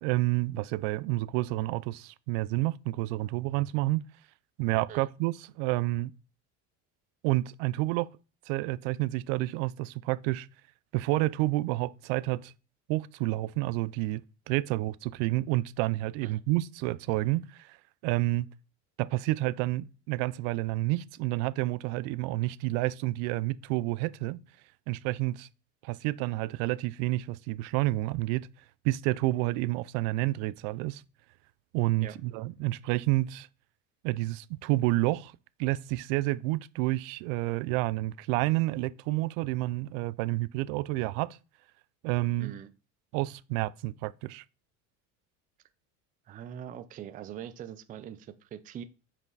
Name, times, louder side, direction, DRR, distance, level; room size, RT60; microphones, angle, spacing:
voice 1, 0.0-4.0 4.6-6.1 7.2-8.1 8.5-10.5 10.9-12.5 12.9-14.2 14.5-17.8 18.0-18.5 19.0-24.4 24.9-25.5 25.8-28.5 28.8-31.0 31.7-33.5 34.0-35.3 35.6-41.4 42.0-42.5 43.1-44.4, right 18 dB, 80° right, 0.5 m, -29 dB
voice 2, 46.3-48.8, right 10 dB, 25° right, 0.3 m, -42 dB
5.4 x 5.0 x 3.9 m
cardioid pair, 135°, 37 cm